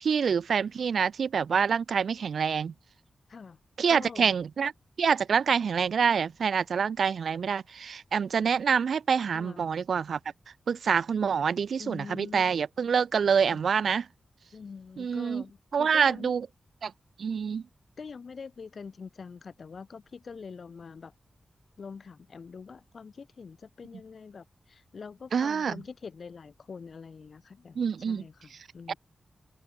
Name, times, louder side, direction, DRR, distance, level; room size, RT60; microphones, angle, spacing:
voice 1, 0.0-2.7 3.8-4.7 5.0-10.2 10.7-14.1 15.0-15.4 15.7-16.5 16.8-16.9 17.2-17.6 25.3-25.8 27.7-28.2 28.9-29.0, right 6 dB, 75° right, 0.9 m, -26 dB
voice 2, 3.9-4.3 9.3-9.7 11.8-12.6 13.5-13.6 14.5-16.3 18.0-21.1 21.8-29.0, left 5 dB, 55° left, 6.9 m, -44 dB
wide cardioid pair, 155°, 0 cm